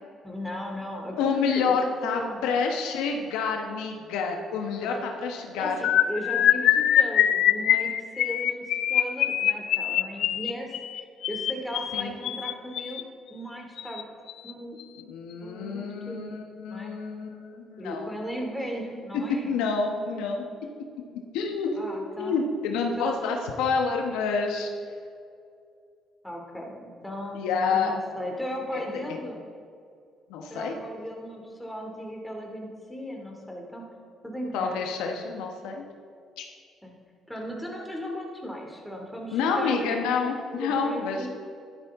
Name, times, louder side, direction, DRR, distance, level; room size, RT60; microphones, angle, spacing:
voice 1, 0.2-2.4 4.8-5.0 5.6-13.0 13.3-14.0 14.4-14.8 15.4-16.2 16.7-16.9 17.8-19.5 21.8-22.4 23.0-23.2 26.2-29.4 30.5-33.8 34.2-34.8 36.8-36.9 37.3-40.0 40.5-41.3, equal, 5° left, 0 dB, 2.7 m, -36 dB
voice 2, 1.2-5.8 11.9-12.1 15.0-18.1 19.4-20.4 21.3-21.7 22.2-24.7 27.3-27.9 28.7-28.8 30.3-30.8 34.5-35.8 36.4-36.5 39.3-41.3, left 5 dB, 90° left, 2 dB, 1.2 m, -28 dB
sound 1, 5.8-13.0 13.8-14.0 14.3-14.5 14.8-15.0, left 11 dB, 75° left, 0.4 m, -24 dB
12.0 x 11.0 x 3.7 m, 2.3 s
cardioid pair, 85°, 0 cm